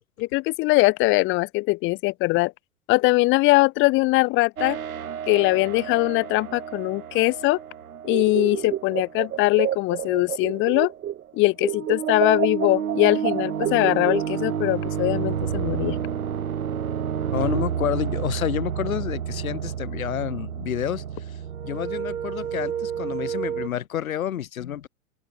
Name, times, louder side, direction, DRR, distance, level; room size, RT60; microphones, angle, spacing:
voice 1, 0.2-2.5 2.9-4.8 5.3-7.6 8.0-10.9 11.3-16.0, left 22 dB, 25° left, 0.8 m, -21 dB
sound 1, 4.6-10.5 11.6-23.7, right 8 dB, 70° right, 5.0 m, -30 dB
sound 2, 8.0-11.3 11.6-14.6, right 11 dB, 20° right, 1.7 m, -29 dB
voice 2, 17.3-24.9, left 10 dB, 65° left, 3.4 m, -29 dB
open air
figure-of-eight pair, 105°, 44 cm